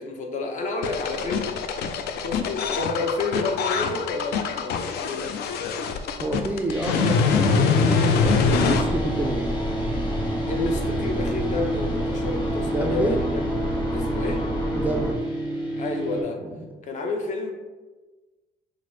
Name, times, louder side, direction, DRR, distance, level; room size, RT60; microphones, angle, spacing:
voice 1, 0.0-1.5 2.2-5.3 10.5-13.4 13.9-14.4 15.8-16.4 16.8-17.5, left 3 dB, 45° left, 3 dB, 0.7 m, -30 dB
sound 1, 0.8-8.8, left 5 dB, 75° left, 0.4 m, -24 dB
voice 2, 6.2-9.5 12.6-13.2 14.7-15.3 16.2-16.6, right 1 dB, 10° right, 1 dB, 0.3 m, -29 dB
sound 2, 6.7-16.2, right 1 dB, 25° left, 1.2 m, -30 dB
sound 3, 8.1-15.1, equal, 10° left, 0.9 m, -29 dB
5.8 x 2.0 x 3.1 m, 1.2 s
cardioid pair, 110°, 17 cm